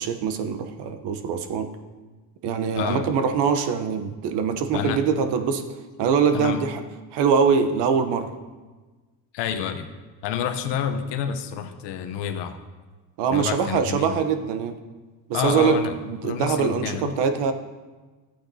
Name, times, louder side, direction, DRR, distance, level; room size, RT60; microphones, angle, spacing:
voice 1, 0.0-1.7 2.4-5.6 6.0-6.8 7.1-8.3 13.2-14.8 15.3-17.5, right 6 dB, 75° right, 8 dB, 0.9 m, -23 dB
voice 2, 2.8-3.1 4.7-5.0 6.3-6.6 9.3-9.9 10.2-12.6 13.3-14.2 15.3-16.0 16.2-17.2, left 8 dB, 75° left, 8 dB, 0.9 m, -28 dB
13.0 x 8.6 x 2.7 m, 1.3 s
supercardioid pair, 80°, 42 cm